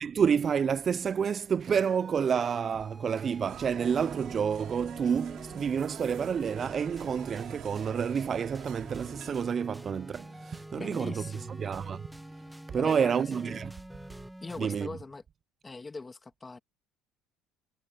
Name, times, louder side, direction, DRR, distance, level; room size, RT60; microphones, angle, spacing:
voice 1, 0.0-11.2 11.6-12.0 12.7-13.7 14.6-14.9, right 7 dB, 40° right, 0.3 m, -29 dB
sound 1, 1.7-14.6, right 1 dB, 5° right, 0.9 m, -47 dB
sound 2, 3.5-9.4, right 13 dB, 60° right, 2.5 m, -47 dB
voice 2, 10.8-11.5 12.7-13.4 14.4-15.2 15.6-16.6, left 3 dB, 20° left, 2.1 m, -41 dB
supercardioid pair, 85°, 0 cm